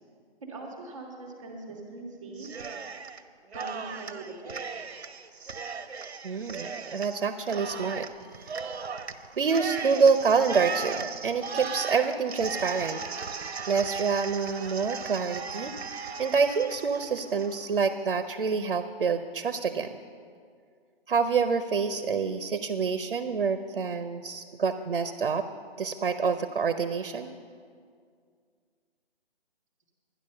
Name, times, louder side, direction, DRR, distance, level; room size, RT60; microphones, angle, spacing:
voice 1, 0.4-2.5 3.5-4.6, right 3 dB, 5° right, -6 dB, 0.7 m, -41 dB
Cheering, 2.4-3.2 3.5-17.9, right 5 dB, 90° right, 1.0 m, -37 dB
voice 2, 6.2-8.1 8.4-8.8 9.4-13.0 13.7-20.0 21.1-25.5 25.8-27.3, right 5 dB, 60° right, 10 dB, 0.8 m, -27 dB
12.0 x 10.5 x 6.5 m, 2.1 s
hypercardioid pair, 170°, 31 cm